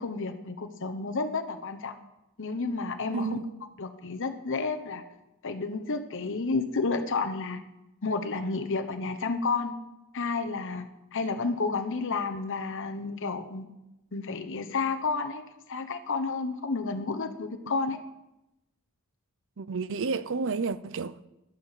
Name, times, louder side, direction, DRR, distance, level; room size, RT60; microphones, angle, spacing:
voice 1, 0.0-1.9 2.4-3.4 3.8-5.0 5.4-7.6 8.0-9.7 10.1-10.9 11.1-13.6 14.1-15.4 15.7-18.0, left 4 dB, 60° left, 1.0 m, -31 dB
voice 2, 3.1-3.5 17.6-17.7 19.6-21.3, right 4 dB, 60° right, 0.6 m, -31 dB
14.5 x 11.5 x 5.8 m
head